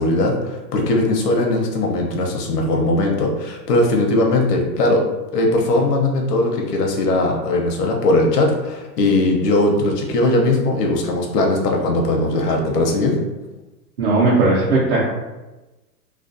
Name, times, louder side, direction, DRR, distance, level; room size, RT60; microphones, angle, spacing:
voice 1, 0.0-5.0 5.3-13.2, left 2 dB, 70° left, 1 dB, 0.8 m, -19 dB
voice 2, 14.0-15.1, right 2 dB, 40° right, -8 dB, 0.5 m, -17 dB
2.4 x 2.3 x 2.5 m, 1.1 s
hypercardioid pair, 145°, 50 cm